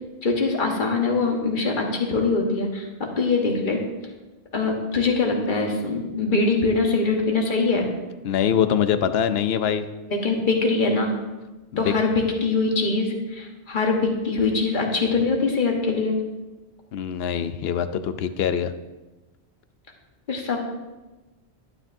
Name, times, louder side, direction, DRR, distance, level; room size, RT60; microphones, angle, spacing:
voice 1, 0.2-3.8 4.5-7.9 10.1-11.1 11.8-16.2 20.3-20.6, left 3 dB, 50° left, 1 dB, 1.5 m, -23 dB
voice 2, 8.2-9.9 11.7-11.9 16.9-18.7, left 8 dB, 70° left, 11 dB, 0.8 m, -23 dB
11.5 x 9.7 x 2.7 m, 1.1 s
omnidirectional pair, 1.1 m